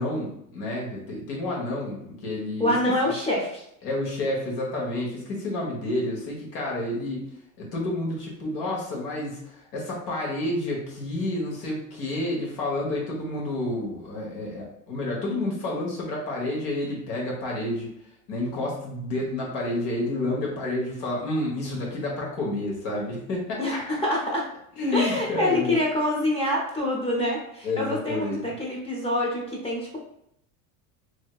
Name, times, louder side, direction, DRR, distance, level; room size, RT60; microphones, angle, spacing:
voice 1, 0.0-2.7 3.0-3.1 3.8-7.3 7.6-17.9 18.3-23.8 24.8-25.7 27.6-28.5, left 2 dB, 85° left, -3 dB, 1.2 m, -29 dB
voice 2, 2.6-3.6 23.6-24.5 24.9-30.0, left 1 dB, 15° left, -3 dB, 0.5 m, -26 dB
3.2 x 2.7 x 2.3 m, 0.74 s
supercardioid pair, 140°, 46 cm